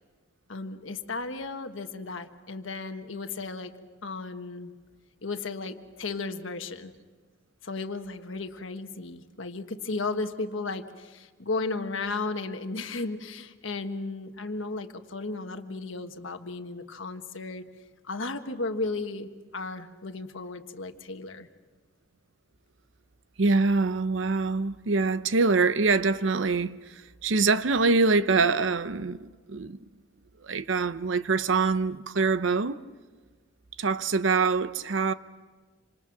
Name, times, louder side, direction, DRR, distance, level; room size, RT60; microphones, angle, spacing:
voice 1, 0.5-3.7 4.0-4.7 5.2-6.9 7.6-17.6 18.0-21.5, left 3 dB, 85° left, 1.4 m, -34 dB
voice 2, 23.4-26.8 27.2-29.8 30.4-32.8 33.8-35.1, right 4 dB, 75° right, 0.8 m, -24 dB
27.0 x 26.0 x 6.0 m
head